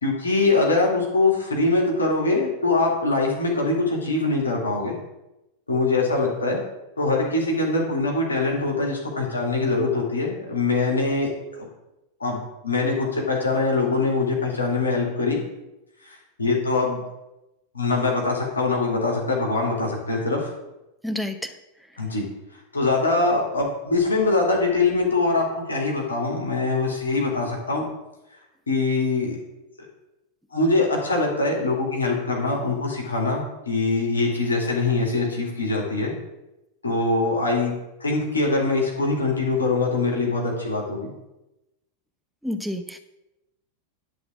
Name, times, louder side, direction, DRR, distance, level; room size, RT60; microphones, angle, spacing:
voice 1, 0.0-5.0 5.7-6.6 7.0-11.7 12.2-15.4 16.0-17.0 17.7-20.5 22.0-22.2 22.7-27.8 28.7-29.4 30.5-36.1 36.8-37.7 38.0-41.1, left 3 dB, 75° left, -1 dB, 2.1 m, -23 dB
voice 2, 21.0-21.5 42.4-43.0, left 1 dB, ahead, 6 dB, 0.8 m, -29 dB
11.0 x 4.0 x 7.1 m, 0.95 s
figure-of-eight pair, 90°, 0 cm